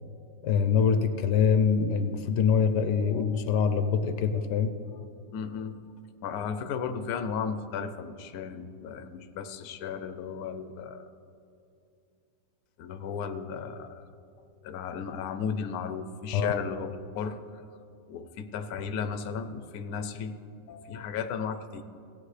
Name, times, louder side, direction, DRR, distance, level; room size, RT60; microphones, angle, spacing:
voice 1, 0.4-4.7 16.3-16.6 20.7-20.9, left 6 dB, 85° left, 9 dB, 1.3 m, -24 dB
voice 2, 5.3-5.8 6.2-11.1 12.8-14.0 14.6-17.6 18.1-20.3 20.9-21.8, left 6 dB, 70° left, 8 dB, 1.1 m, -35 dB
17.0 x 8.8 x 3.3 m, 2.5 s
omnidirectional pair, 1.8 m